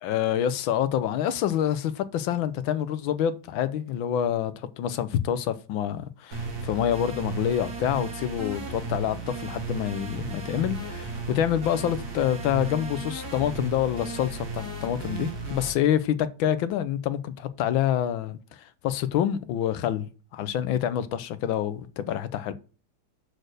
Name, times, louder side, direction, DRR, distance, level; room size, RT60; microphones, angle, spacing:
voice 1, 0.0-18.4 18.8-20.1 20.3-22.5, left 10 dB, 90° left, 1.5 m, -27 dB
sound 1, 6.3-15.7, right 3 dB, 50° right, 2.5 m, -35 dB
6.5 x 4.3 x 6.4 m
omnidirectional pair, 2.1 m